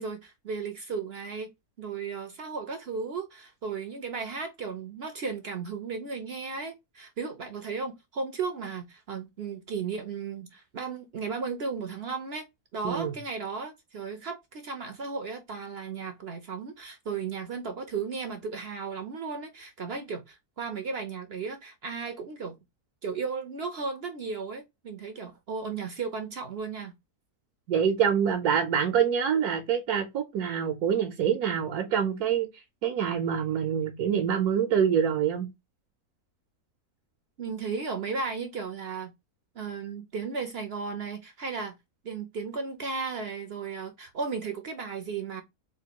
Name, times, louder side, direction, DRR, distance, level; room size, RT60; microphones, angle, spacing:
voice 1, 0.0-1.5 1.8-12.5 12.7-22.6 23.0-26.9 37.4-39.1 39.5-41.8 42.0-45.4, right 5 dB, 55° right, 0.7 m, -35 dB
voice 2, 27.7-35.5, right 8 dB, 75° right, 1.2 m, -26 dB
4.3 x 2.7 x 2.8 m
omnidirectional pair, 1.6 m